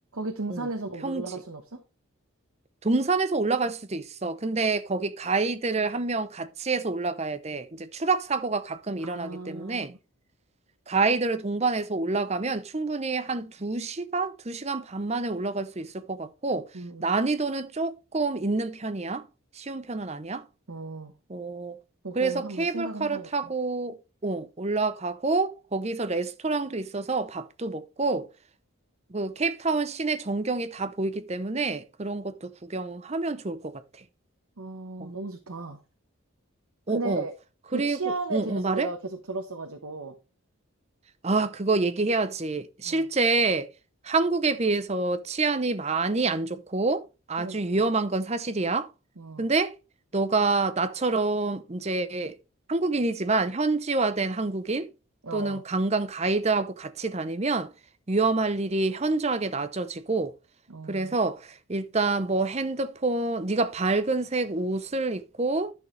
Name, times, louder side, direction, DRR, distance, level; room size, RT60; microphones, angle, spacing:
voice 1, 0.1-1.8 9.0-10.0 16.7-17.1 20.7-21.1 22.0-23.5 34.6-35.8 36.9-37.3 37.7-40.1 42.8-43.1 47.4-47.9 49.2-49.5 55.2-55.6 60.7-61.2, right 3 dB, 80° right, 1.1 m, -35 dB
voice 2, 2.8-9.9 10.9-16.7 17.0-19.3 19.5-20.4 21.3-21.8 22.1-28.3 29.1-33.8 35.0-35.1 36.9-37.2 37.7-38.9 41.2-43.7 44.0-47.0 47.3-48.9 49.4-49.7 50.1-52.4 52.7-54.9 55.3-57.7 58.1-60.3 60.9-65.7, right 3 dB, 30° right, 0.7 m, -27 dB
11.5 x 6.5 x 3.2 m
head